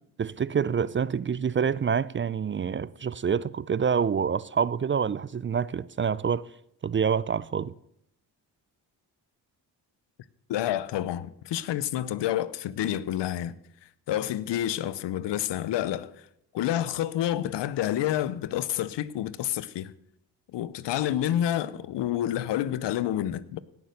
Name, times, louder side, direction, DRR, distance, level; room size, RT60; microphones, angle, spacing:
voice 1, 0.2-6.5 6.8-7.7, right 7 dB, 30° right, 0.4 m, -27 dB
voice 2, 10.5-13.6 14.1-16.1 16.5-19.9 20.5-23.6, left 12 dB, 85° left, 0.7 m, -28 dB
17.5 x 6.9 x 6.5 m
cardioid pair, 60°, 42 cm